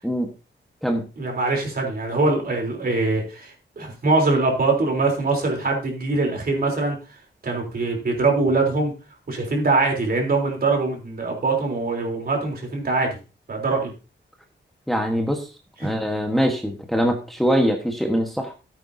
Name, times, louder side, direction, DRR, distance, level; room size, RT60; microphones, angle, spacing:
voice 1, 1.2-7.0 7.4-8.9 9.3-13.2 13.5-13.9 15.8-15.9, right 3 dB, 50° right, 1 dB, 3.6 m, -23 dB
voice 2, 14.9-15.5 15.8-18.5, equal, ahead, 3 dB, 1.3 m, -23 dB
14.0 x 8.9 x 2.8 m, 0.31 s
wide cardioid pair, 140°, 19 cm